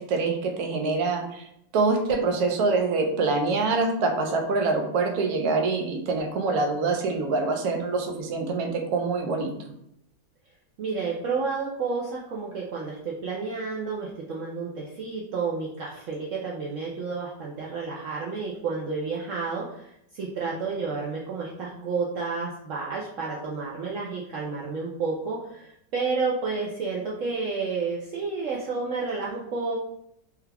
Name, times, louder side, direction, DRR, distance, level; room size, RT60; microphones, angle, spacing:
voice 1, 0.0-9.5, right 3 dB, 70° right, 3 dB, 1.0 m, -25 dB
voice 2, 10.8-29.8, right 4 dB, 85° right, -3 dB, 0.6 m, -31 dB
3.5 x 2.2 x 3.3 m, 0.75 s
omnidirectional pair, 1.9 m